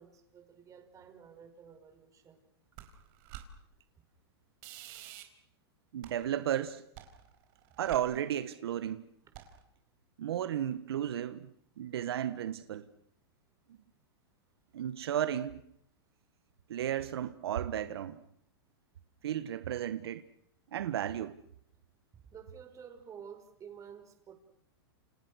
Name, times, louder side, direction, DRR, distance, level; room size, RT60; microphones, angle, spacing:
voice 1, 0.0-2.4 22.1-24.3, right 7 dB, 25° right, 5.4 m, -51 dB
sound 1, 2.8-3.5 4.6-5.2 6.0-6.5 7.0-8.5 9.3-9.6, right 12 dB, 50° right, 4.7 m, -49 dB
voice 2, 5.9-6.8 7.8-9.1 10.2-12.9 14.7-15.6 16.7-18.2 19.2-20.2 20.7-21.4, right 10 dB, 75° right, 1.4 m, -34 dB
30.0 x 27.5 x 6.4 m
hypercardioid pair, 125°, 13 cm